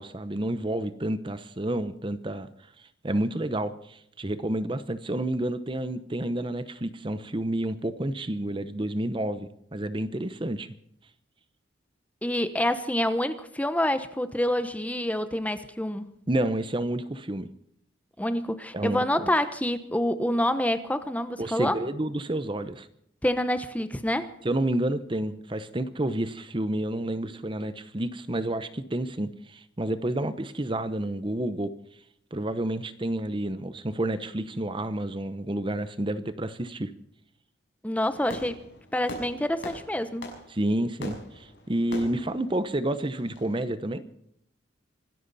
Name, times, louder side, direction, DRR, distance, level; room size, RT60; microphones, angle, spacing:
voice 1, 0.0-2.5 2.8-10.7 16.3-17.5 18.7-19.3 21.4-22.9 24.4-31.7 32.3-36.9 40.5-44.0, right 1 dB, 25° right, 12 dB, 0.9 m, -30 dB
voice 2, 12.2-16.1 18.2-21.8 23.2-24.3 37.8-38.6 38.9-40.3, left 1 dB, 10° left, 11 dB, 0.9 m, -27 dB
Fireworks, 38.0-43.6, left 1 dB, 65° left, 6.2 m, -42 dB
25.5 x 13.5 x 4.2 m, 0.71 s
head